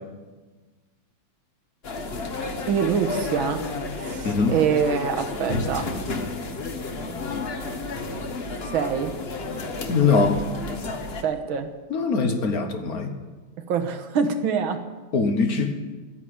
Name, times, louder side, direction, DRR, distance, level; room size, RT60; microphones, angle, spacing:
sound 1, 1.8-11.2, left 3 dB, 35° left, 1.1 m, -31 dB
voice 1, 2.7-3.6 3.9-5.9 8.6-9.1 11.2-11.7 13.7-14.8, right 6 dB, 85° right, 7 dB, 2.0 m, -25 dB
voice 2, 4.2-4.5 9.9-10.4 11.9-13.1 15.1-15.8, left 4 dB, 55° left, 7 dB, 1.4 m, -22 dB
13.0 x 10.0 x 9.4 m, 1.3 s
omnidirectional pair, 2.2 m